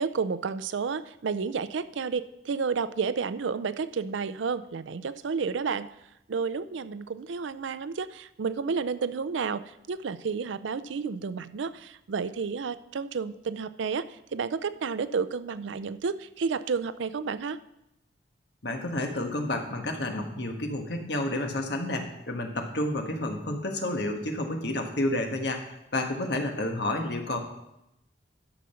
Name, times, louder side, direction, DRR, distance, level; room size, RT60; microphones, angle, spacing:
voice 1, 0.0-5.9 6.3-17.6, right 5 dB, 75° right, 14 dB, 0.4 m, -31 dB
voice 2, 18.6-27.4, left 1 dB, 60° left, 3 dB, 1.4 m, -30 dB
12.0 x 6.3 x 5.7 m, 0.86 s
head